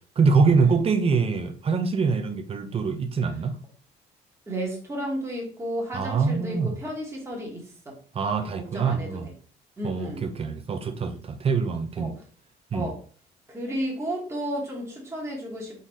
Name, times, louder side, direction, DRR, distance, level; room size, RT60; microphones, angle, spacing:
voice 1, 0.2-3.6 5.9-6.7 8.1-9.3 9.8-12.1 12.7-12.9, right 5 dB, 35° right, 0.7 m, -24 dB
voice 2, 4.5-8.0 8.7-9.2 9.8-10.3 12.0-12.1 12.7-13.0 13.5-15.8, right 1 dB, 15° right, 1.5 m, -32 dB
4.0 x 4.0 x 3.1 m
cardioid pair, 110°, 17 cm